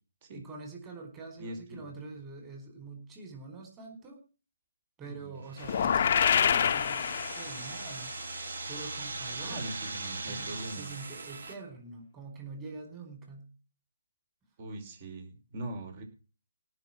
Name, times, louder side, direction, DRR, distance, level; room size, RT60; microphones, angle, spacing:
voice 1, 0.3-4.2 5.0-8.1 8.7-9.6 10.2-13.5, right 3 dB, 15° right, 2 dB, 4.8 m, -45 dB
voice 2, 1.4-2.0 5.0-5.4 5.8-6.0 9.4-10.9 14.6-16.0, right 1 dB, 35° right, 4 dB, 5.0 m, -42 dB
sound 1, 5.4-11.5, right 3 dB, 65° right, 3.2 m, -40 dB
sound 2, 5.6-7.8, left 8 dB, 45° left, 0.9 m, -26 dB
18.0 x 6.1 x 7.5 m, 0.35 s
figure-of-eight pair, 145°, 0 cm